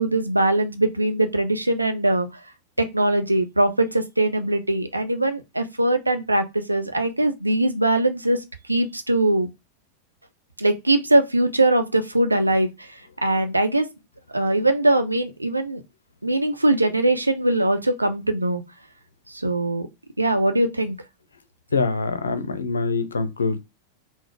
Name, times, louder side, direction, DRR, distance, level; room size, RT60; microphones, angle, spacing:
voice 1, 0.0-2.3 2.8-8.4 8.7-9.5 10.6-12.7 13.2-13.9 14.3-15.8 16.2-18.6 19.3-19.9 20.2-21.0, right 1 dB, 85° right, 0.5 m, -21 dB
voice 2, 21.7-23.6, left 4 dB, 75° left, 0.5 m, -24 dB
4.0 x 2.0 x 4.5 m
figure-of-eight pair, 90°, 0 cm